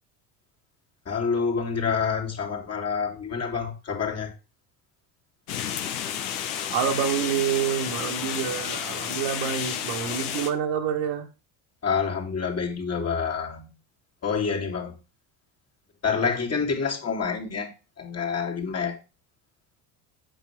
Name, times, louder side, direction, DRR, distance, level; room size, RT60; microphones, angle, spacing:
voice 1, 1.0-4.3 11.8-13.7 14.2-15.0 16.0-19.0, left 5 dB, 35° left, 2.8 m, -27 dB
sound 1, 5.5-10.5, left 9 dB, 85° left, 1.5 m, -31 dB
voice 2, 6.7-11.3, right 8 dB, 75° right, 2.0 m, -27 dB
8.0 x 6.2 x 3.7 m
supercardioid pair, 90°, 43 cm